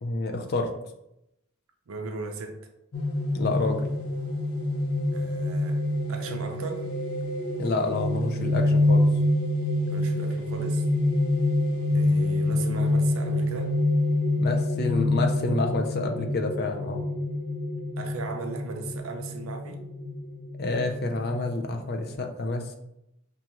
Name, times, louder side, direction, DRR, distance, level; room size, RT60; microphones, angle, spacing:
voice 1, 0.0-0.7 3.3-3.8 7.6-9.1 14.4-17.0 20.6-22.8, left 3 dB, 45° left, 4 dB, 0.5 m, -28 dB
voice 2, 1.9-2.7 5.1-5.8 6.1-6.9 9.8-10.9 11.9-13.8 18.0-19.8, right 4 dB, 70° right, 4 dB, 0.5 m, -37 dB
sound 1, 2.9-22.1, left 1 dB, 85° left, 0.7 m, -26 dB
5.3 x 2.4 x 3.0 m, 0.84 s
head